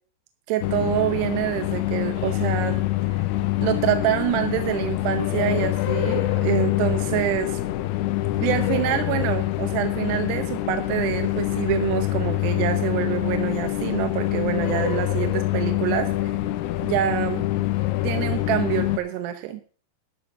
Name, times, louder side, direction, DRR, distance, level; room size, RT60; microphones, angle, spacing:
voice 1, 0.5-2.8 3.6-7.6 8.4-16.3 16.8-17.4 18.0-19.6, right 12 dB, 75° right, 7 dB, 2.9 m, -26 dB
sound 1, 0.6-19.0, left 16 dB, 80° left, 2.7 m, -25 dB
13.0 x 6.4 x 6.5 m, 0.41 s
omnidirectional pair, 5.1 m